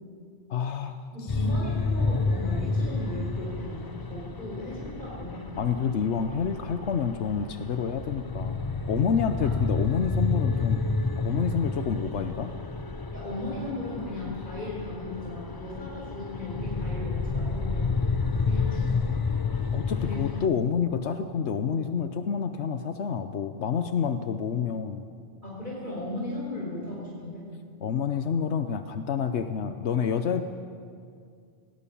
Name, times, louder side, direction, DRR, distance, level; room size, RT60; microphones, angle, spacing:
voice 1, 0.5-1.0 5.6-8.6 8.9-10.8 11.2-12.5 19.7-25.0 27.8-30.4, left 7 dB, 85° left, 8 dB, 1.1 m, -28 dB
voice 2, 1.1-3.8 4.1-5.4 9.4-9.5 13.1-18.0 18.4-19.0 20.0-20.2 25.4-27.4, left 2 dB, 45° left, -4 dB, 4.9 m, -36 dB
sound 1, 1.3-20.5, left 4 dB, 25° left, 0.6 m, -30 dB
18.5 x 18.5 x 8.6 m, 2.2 s
omnidirectional pair, 1.1 m